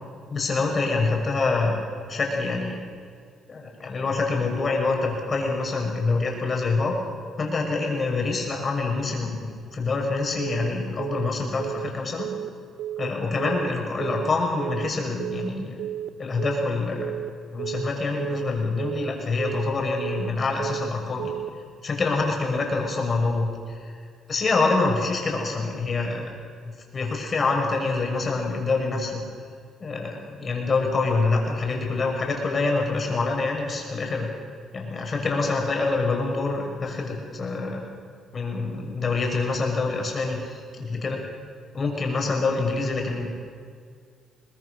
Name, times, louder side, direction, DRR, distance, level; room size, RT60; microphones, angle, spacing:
voice 1, 0.3-1.8 2.1-2.8 3.5-6.9 7.4-12.3 13.0-15.8 16.2-17.1 17.5-21.3 21.8-23.9 24.3-26.3 26.9-29.2 29.8-34.3 34.7-37.8 38.3-41.2 41.7-43.3, left 3 dB, 40° left, 1 dB, 6.5 m, -26 dB
Telephone, 10.4-10.7 11.0-11.3 11.6-11.9 12.2-12.5 12.8-13.1 13.4-13.7 14.0-14.3 14.6-14.9 15.2-15.5 15.8-16.1 16.4-16.7 17.0-17.3 17.6-17.9 18.2-18.5 18.8-19.1 19.4-19.7 20.0-20.3 20.6-20.9 21.2-21.5, right 11 dB, 70° right, 0.8 m, -32 dB
23.5 x 20.5 x 6.6 m, 2.1 s
cardioid pair, 75°, 0 cm